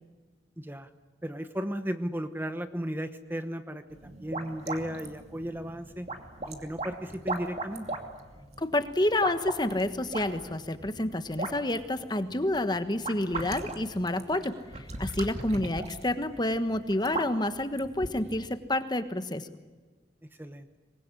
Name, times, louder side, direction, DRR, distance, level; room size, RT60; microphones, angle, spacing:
voice 1, 0.6-0.9 1.2-6.1 6.4-7.9 20.4-20.7, equal, 10° right, 9 dB, 1.0 m, -35 dB
sound 1, 3.9-18.5, right 2 dB, 35° right, 2.6 m, -39 dB
voice 2, 8.6-19.5, left 1 dB, 25° left, 10 dB, 1.4 m, -29 dB
25.0 x 21.0 x 10.0 m, 1.3 s
head